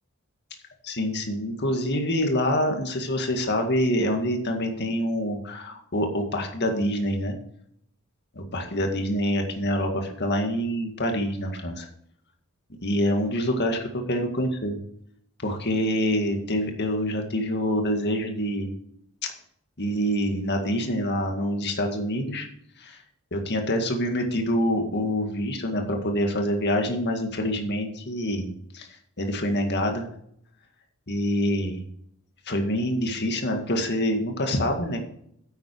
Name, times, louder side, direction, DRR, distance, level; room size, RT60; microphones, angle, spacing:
voice 1, 0.8-7.3 8.4-11.9 12.8-14.8 15.4-18.7 19.8-22.5 22.8-23.0 23.3-28.9 29.2-30.1 31.1-31.8 32.5-35.0, equal, 50° left, 4 dB, 1.9 m, -26 dB
10.0 x 8.0 x 4.7 m, 0.70 s
head